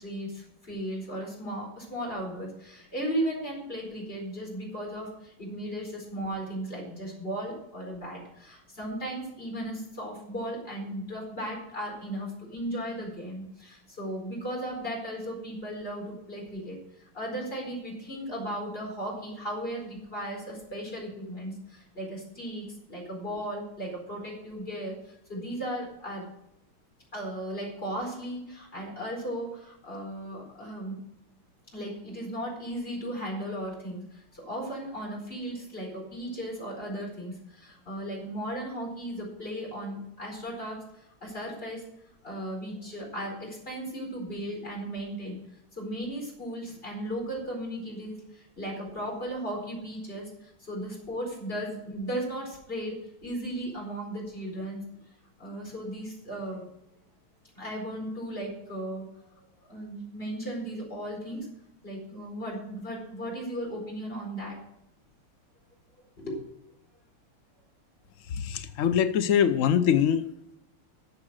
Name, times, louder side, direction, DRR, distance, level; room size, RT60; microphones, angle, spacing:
voice 1, 0.0-16.8 17.1-26.3 27.1-31.0 31.7-41.8 42.2-45.4 45.8-54.8 55.4-56.7 57.6-59.1 59.4-61.5 61.8-64.6 66.2-66.4, right 1 dB, 25° left, -1 dB, 4.8 m, -36 dB
voice 2, 68.3-70.2, left 8 dB, 80° left, 10 dB, 0.7 m, -23 dB
13.5 x 7.4 x 6.4 m, 0.81 s
omnidirectional pair, 2.3 m